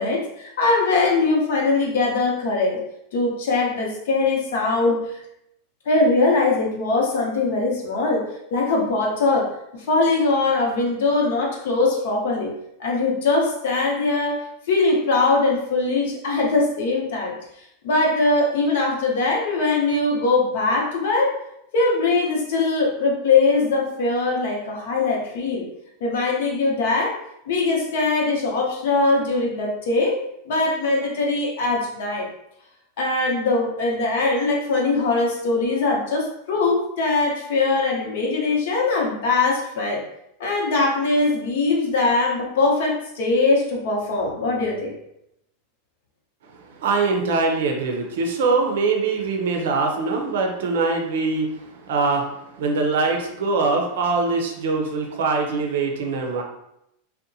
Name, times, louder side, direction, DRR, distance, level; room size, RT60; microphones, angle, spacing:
voice 1, 0.0-2.8 3.1-5.2 5.9-8.2 8.5-12.5 12.8-17.3 17.8-21.3 21.7-25.7 26.0-27.1 27.5-30.2 30.4-32.3 33.0-40.0 40.4-44.9, left 3 dB, 75° left, -2 dB, 0.8 m, -21 dB
voice 2, 46.7-56.4, right 3 dB, 80° right, 3 dB, 0.5 m, -23 dB
2.7 x 2.1 x 2.6 m, 0.81 s
supercardioid pair, 140°, 0 cm